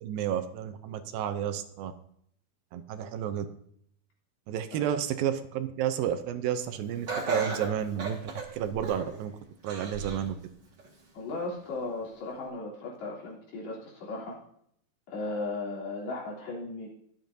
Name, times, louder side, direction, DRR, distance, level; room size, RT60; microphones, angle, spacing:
voice 1, 0.0-1.9 2.7-3.5 4.5-9.3 9.6-10.4, right 9 dB, 80° right, 9 dB, 2.3 m, -31 dB
Laughter, 7.1-9.2 9.7-10.3 10.8-10.9 11.8-11.9, right 3 dB, 40° right, 1.7 m, -34 dB
voice 2, 11.1-14.4 15.1-16.9, left 3 dB, 80° left, -4 dB, 5.2 m, -36 dB
22.0 x 7.6 x 2.7 m, 0.68 s
omnidirectional pair, 4.4 m